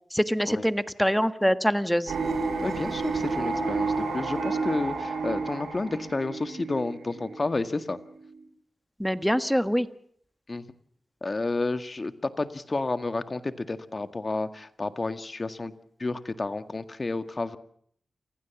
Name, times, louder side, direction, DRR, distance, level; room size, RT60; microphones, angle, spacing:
voice 1, 0.1-2.1 9.0-9.9, equal, ahead, 12 dB, 1.5 m, -24 dB
sound 1, 2.1-8.4, right 4 dB, 85° right, 5.5 m, -31 dB
voice 2, 2.6-8.0 10.5-10.7 11.2-15.7 16.0-17.6, left 3 dB, 40° left, 10 dB, 1.8 m, -31 dB
28.5 x 16.0 x 7.3 m, 0.65 s
cardioid pair, 45°, 0 cm